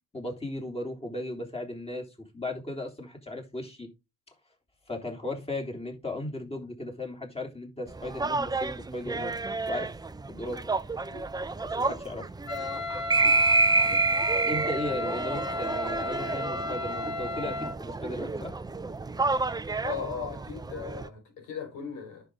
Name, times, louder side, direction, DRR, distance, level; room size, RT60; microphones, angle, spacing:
voice 1, 0.1-2.1 2.3-3.9 4.9-9.3 9.7-9.9 10.3-10.6 11.8-12.2 14.5-18.5, left 1 dB, 20° left, 3.5 m, -36 dB
sound 1, 7.9-21.1, right 3 dB, 15° right, 0.5 m, -29 dB
sound 2, 11.1-11.4 11.8-12.1 12.5-12.7 13.2-13.4 13.9-14.1 14.6-14.8 15.3-15.5 16.0-16.2 16.7-16.9 17.5-17.6 18.2-18.3 18.6-19.0 19.5-19.7 20.3-20.4, equal, 45° left, 4.5 m, -49 dB
Wind instrument woodwind instrument, 12.5-17.8, left 2 dB, 65° left, 5.0 m, -34 dB
voice 2, 19.8-22.2, left 7 dB, 90° left, 4.8 m, -37 dB
10.0 x 6.4 x 3.8 m
cardioid pair, 90°, 30 cm